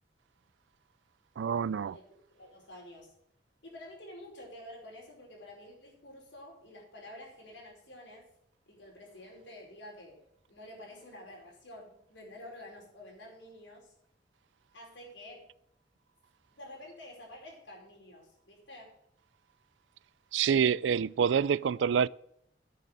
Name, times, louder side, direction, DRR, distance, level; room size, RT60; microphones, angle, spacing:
voice 1, 1.4-2.0 20.3-22.1, right 7 dB, 85° right, 0.4 m, -27 dB
voice 2, 2.3-3.1 3.6-8.3 8.7-13.9 14.7-15.4 16.5-19.0, left 1 dB, 85° left, 4.7 m, -49 dB
9.8 x 6.7 x 7.5 m
head